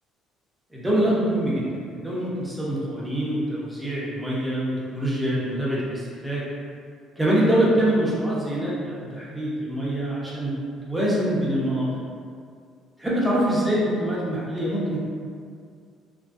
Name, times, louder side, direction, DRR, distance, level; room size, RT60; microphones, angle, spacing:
voice 1, 0.7-6.5 7.2-10.5 10.8-11.9 13.0-15.0, right 1 dB, 5° right, -7 dB, 0.5 m, -24 dB
2.8 x 2.5 x 2.3 m, 2.2 s
cardioid pair, 180°, 0 cm